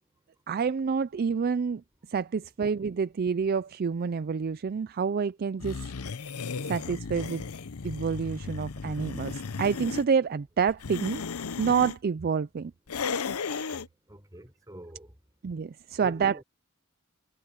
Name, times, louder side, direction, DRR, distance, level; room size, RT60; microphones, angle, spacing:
voice 1, 0.5-1.8 2.1-5.8 6.7-7.4 7.8-11.2 11.6-12.7 15.4-16.4, right 6 dB, 45° right, 0.4 m, -28 dB
sound 1, 5.6-10.1 10.7-12.0 12.9-13.9, left 5 dB, 80° left, 0.8 m, -35 dB
voice 2, 14.1-15.1 16.0-16.4, right 1 dB, 15° right, 5.0 m, -45 dB
head